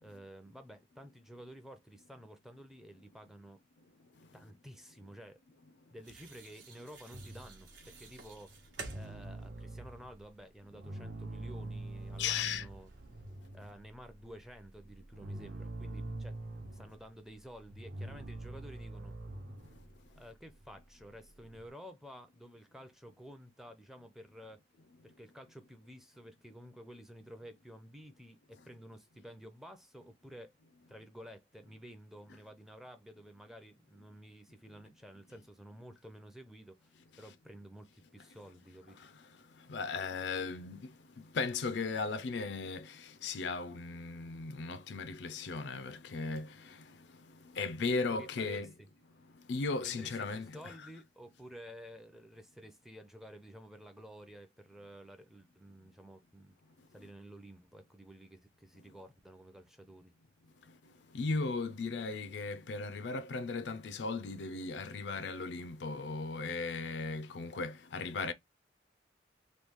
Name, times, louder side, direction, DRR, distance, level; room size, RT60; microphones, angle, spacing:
voice 1, 0.0-3.6 4.3-5.4 5.9-12.9 13.5-16.4 16.7-19.2 20.2-24.6 25.0-30.5 30.9-39.0 48.1-48.9 49.8-56.6 56.9-60.1, equal, ahead, 0.5 m, -52 dB
sound 1, 6.0-13.5, right 4 dB, 75° right, 1.0 m, -53 dB
sound 2, 7.1-10.3 10.7-21.7, right 2 dB, 50° right, 0.8 m, -45 dB
voice 2, 12.2-12.7 39.0-39.1 39.7-40.9 41.3-47.0 47.5-48.7 49.5-50.7 61.1-68.3, left 4 dB, 65° left, 0.4 m, -36 dB
3.1 x 2.3 x 3.5 m
head